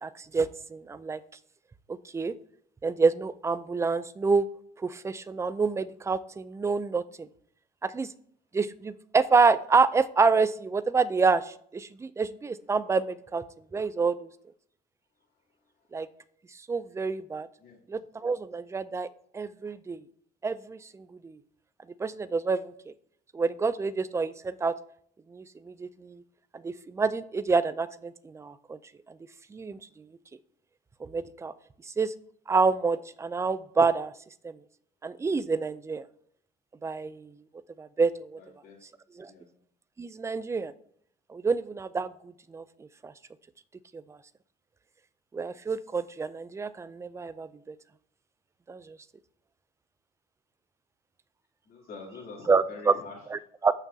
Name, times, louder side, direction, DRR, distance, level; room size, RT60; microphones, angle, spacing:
voice 1, 0.0-1.2 2.1-2.3 2.8-4.4 4.8-7.3 7.8-8.1 8.5-13.4 13.7-14.3 15.9-16.1 16.7-17.5 17.9-19.1 19.3-20.0 20.4-21.4 22.0-22.9 23.3-24.7 25.3-26.2 26.6-28.8 29.5-29.8 31.0-31.5 32.0-32.1 32.5-34.1 34.4-34.6 35.0-36.0 36.8-37.3 37.8-38.4 39.2-39.3 40.0-40.7 41.3-42.1 42.5-42.6 43.0-43.1 43.9-44.2 45.3-47.7 48.7-49.0 52.5-52.9 53.3-53.7, right 4 dB, 15° right, 15 dB, 0.4 m, -27 dB
voice 2, 38.4-38.8 39.2-39.4 51.6-53.2, left 4 dB, 60° left, -3 dB, 3.0 m, -45 dB
13.5 x 6.0 x 2.8 m, 0.64 s
cardioid pair, 110°, 17 cm